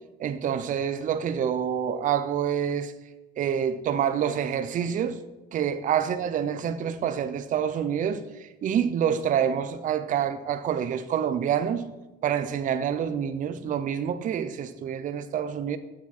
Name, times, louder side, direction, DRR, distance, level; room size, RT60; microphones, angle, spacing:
voice 1, 0.2-2.9 3.4-5.2 5.5-11.8 12.2-15.8, right 8 dB, 50° right, 0.6 m, -27 dB
8.5 x 7.2 x 4.2 m
cardioid pair, 110°, 17 cm